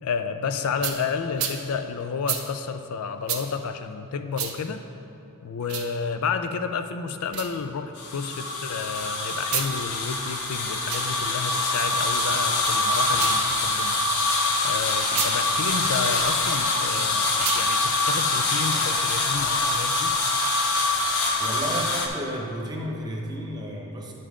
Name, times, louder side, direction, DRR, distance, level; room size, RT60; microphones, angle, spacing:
voice 1, 0.0-4.8 5.4-14.0 14.6-20.1, left 5 dB, 70° left, 9 dB, 0.4 m, -31 dB
sound 1, 0.8-1.0 1.4-1.6 2.3-2.4 3.3-3.4 4.3-4.5 5.6-5.9 7.3-7.5 9.4-9.7 10.8-11.1 13.0-13.4 15.1-15.3 17.3-17.7, right 9 dB, 70° right, 0.7 m, -29 dB
sound 2, 8.0-22.1, left 2 dB, 85° left, 0.8 m, -24 dB
voice 2, 21.4-24.1, equal, 20° right, -1 dB, 0.8 m, -32 dB
9.7 x 5.4 x 3.6 m, 2.9 s
head